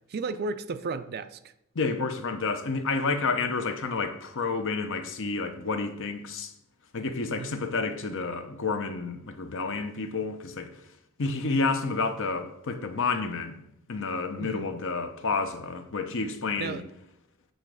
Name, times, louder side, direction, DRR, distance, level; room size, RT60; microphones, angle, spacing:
voice 1, 0.1-1.5 7.2-7.5 14.4-14.8 16.6-16.9, right 4 dB, 45° right, 0.4 m, -34 dB
voice 2, 1.7-6.5 6.9-10.7 11.2-13.6 13.9-16.8, left 4 dB, 60° left, 0.8 m, -30 dB
8.0 x 4.0 x 6.4 m
head